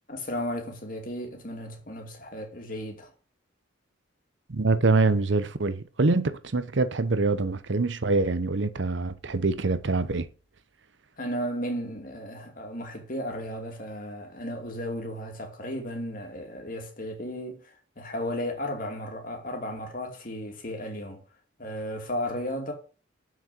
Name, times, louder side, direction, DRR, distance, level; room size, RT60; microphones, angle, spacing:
voice 1, 0.1-3.1 11.2-21.2 21.6-22.7, equal, 45° left, 2.7 m, -34 dB
voice 2, 4.5-10.3, right 3 dB, 65° right, 0.8 m, -25 dB
7.4 x 6.3 x 7.8 m
head